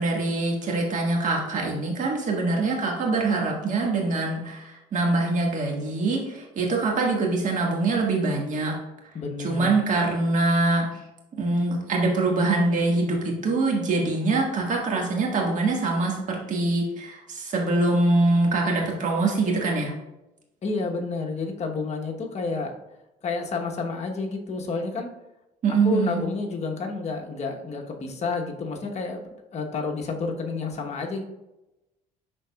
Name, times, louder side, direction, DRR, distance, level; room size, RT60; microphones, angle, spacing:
voice 1, 0.0-8.7 9.4-10.9 11.3-19.9 25.6-26.2, right 3 dB, 50° right, 0 dB, 1.6 m, -24 dB
voice 2, 9.1-9.7 20.6-22.8 23.2-25.1 25.7-31.2, left 4 dB, 40° left, 2 dB, 1.0 m, -30 dB
11.0 x 3.8 x 2.3 m, 0.96 s
cardioid pair, 110°, 17 cm